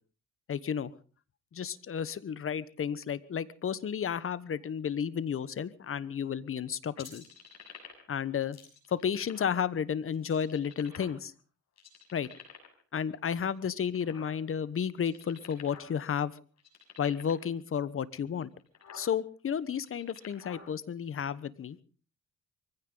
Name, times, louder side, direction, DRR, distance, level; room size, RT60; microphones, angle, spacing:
voice 1, 0.5-0.9 1.5-7.2 8.1-8.6 8.9-11.3 12.1-12.3 12.9-16.3 17.0-18.5 18.9-21.8, left 8 dB, 45° left, 17 dB, 1.1 m, -32 dB
sound 1, 7.0-8.2 8.5-9.6 10.1-11.4 11.8-12.8 13.3-14.6 14.9-15.9 16.2-16.3 16.6-17.5 18.1-18.2 18.6-19.1 19.7-20.6, left 6 dB, 60° left, 6.7 m, -49 dB
23.5 x 16.0 x 3.9 m, 0.39 s
cardioid pair, 90°, 30 cm